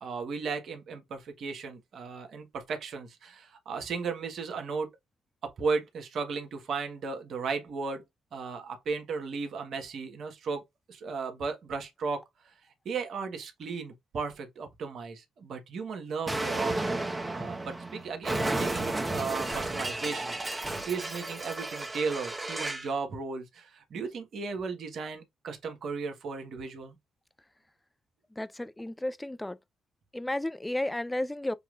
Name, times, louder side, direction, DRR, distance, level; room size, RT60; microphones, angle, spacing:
voice 1, 0.0-4.9 5.4-8.0 8.3-10.6 10.9-12.2 12.8-17.0 17.3-26.9, right 4 dB, 65° right, 1.3 m, -35 dB
Explosion, 16.3-22.9, right 2 dB, 20° right, 1.2 m, -33 dB
voice 2, 28.4-29.6 30.1-31.5, left 1 dB, 15° left, 0.6 m, -33 dB
6.7 x 2.9 x 2.5 m
hypercardioid pair, 50°, 0 cm